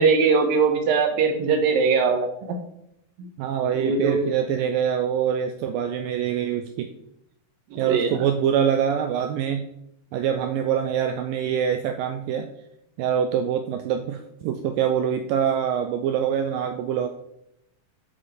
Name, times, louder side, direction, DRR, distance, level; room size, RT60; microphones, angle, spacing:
voice 1, 0.0-2.6 3.7-4.2 7.7-8.1, right 5 dB, 70° right, 5 dB, 2.4 m, -21 dB
voice 2, 3.4-6.9 7.8-9.6 10.1-12.5 13.0-17.1, right 8 dB, 90° right, 6 dB, 2.0 m, -24 dB
7.5 x 7.4 x 4.2 m, 0.79 s
omnidirectional pair, 4.6 m